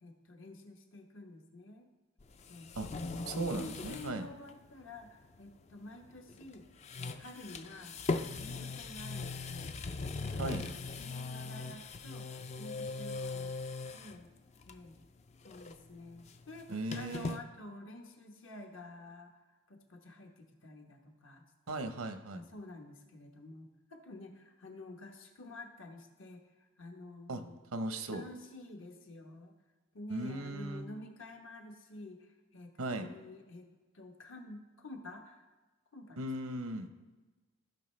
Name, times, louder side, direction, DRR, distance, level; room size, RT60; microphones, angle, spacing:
voice 1, 0.0-1.9 2.5-2.7 3.0-6.6 7.0-7.9 8.2-13.5 13.9-14.3 14.6-15.0 15.4-21.9 22.3-27.6 28.1-29.5 29.9-33.7 33.9-35.5 35.9-36.3, left 2 dB, 65° left, 3 dB, 1.1 m, -50 dB
sound 1, 2.2-4.2 4.5-4.6 6.3-6.5 6.8-14.2 14.6-15.0 15.3-17.4, left 3 dB, 30° left, 0.3 m, -40 dB
voice 2, 3.3-4.3 10.4-10.7 16.7-17.4 21.7-22.4 27.3-27.4 27.7-28.2 30.1-30.9 32.8-33.1 36.2-36.9, right 2 dB, 90° right, 8 dB, 0.8 m, -37 dB
15.0 x 5.4 x 3.2 m, 1.2 s
head